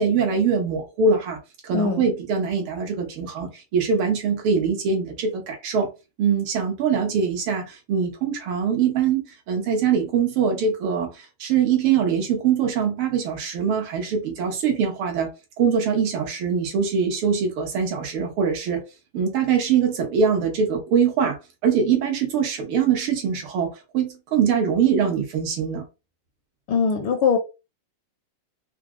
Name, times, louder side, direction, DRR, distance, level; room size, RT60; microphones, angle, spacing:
voice 1, 0.0-1.4 1.6-5.9 6.2-9.2 9.5-11.1 11.4-15.3 15.6-18.8 19.1-21.4 21.6-23.7 23.9-25.8, right 6 dB, 75° right, 2.0 m, -22 dB
voice 2, 1.7-2.1 26.7-27.4, left 6 dB, 75° left, 1.5 m, -21 dB
4.6 x 2.0 x 3.6 m
omnidirectional pair, 2.4 m